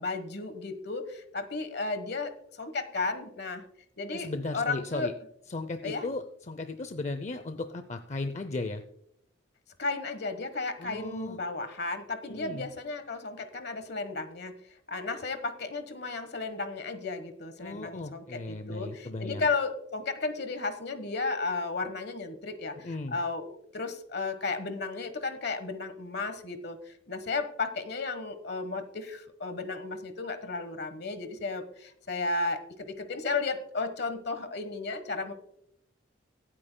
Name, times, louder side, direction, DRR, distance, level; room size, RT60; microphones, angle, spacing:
voice 1, 0.0-3.7 4.0-5.1 5.8-6.1 9.8-14.5 14.9-35.3, left 3 dB, 60° left, 9 dB, 1.2 m, -34 dB
voice 2, 4.1-5.1 5.5-8.8 10.8-11.4 12.3-12.7 17.6-19.4 22.8-23.2, left 2 dB, 40° left, 9 dB, 0.5 m, -36 dB
24.0 x 8.7 x 2.2 m, 0.73 s
head